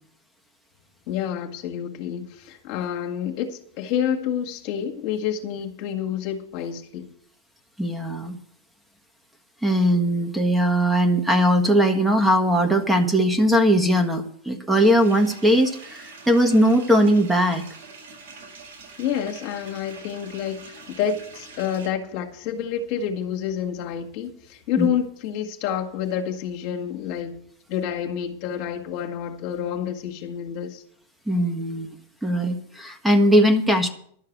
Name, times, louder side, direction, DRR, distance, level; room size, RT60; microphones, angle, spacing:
voice 1, 1.1-7.1 19.0-27.4 27.7-30.8, left 9 dB, 50° left, 1.9 m, -28 dB
voice 2, 7.8-8.3 9.6-17.6 24.8-24.9 31.3-31.9 32.2-33.9, equal, 5° right, 1.6 m, -19 dB
sound 1, 14.8-21.9, right 4 dB, 70° right, 6.2 m, -44 dB
12.0 x 6.6 x 9.3 m
hypercardioid pair, 95°, 0 cm